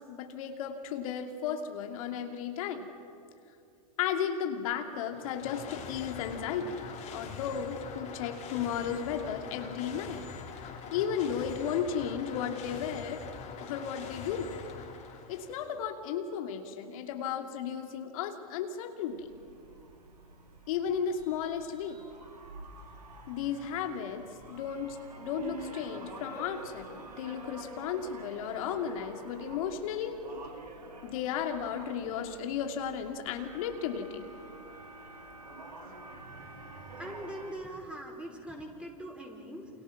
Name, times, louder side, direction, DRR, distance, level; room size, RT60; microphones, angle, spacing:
voice 1, 0.0-2.9 4.0-10.3 10.9-13.2 13.6-14.5 15.3-19.3 20.7-22.0 23.3-30.2 31.0-34.2, left 8 dB, 60° left, 5 dB, 2.6 m, -34 dB
sound 1, 4.9-15.8, left 6 dB, 35° left, 4.4 m, -44 dB
sound 2, 19.1-37.5, right 2 dB, 90° right, 4.2 m, -47 dB
voice 2, 36.8-39.7, right 1 dB, 5° right, 0 dB, 5.2 m, -42 dB
29.0 x 28.0 x 6.0 m, 2.5 s
hypercardioid pair, 105°, 20 cm